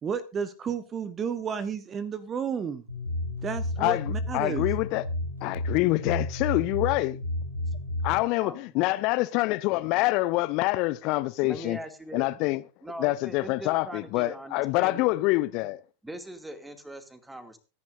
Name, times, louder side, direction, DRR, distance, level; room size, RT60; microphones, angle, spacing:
voice 1, 0.0-2.8 3.4-4.7, right 6 dB, 25° right, 1.1 m, -32 dB
sound 1, 2.9-8.2, left 1 dB, 90° right, 6.2 m, -32 dB
voice 2, 3.8-5.0 5.4-7.2 8.0-11.8 12.1-12.6 13.0-15.8, left 20 dB, 40° left, 0.6 m, -26 dB
voice 3, 8.2-8.8 11.4-12.3 12.8-15.2 16.0-17.6, right 1 dB, 5° right, 2.4 m, -41 dB
25.0 x 11.0 x 2.6 m
figure-of-eight pair, 90°, 0 cm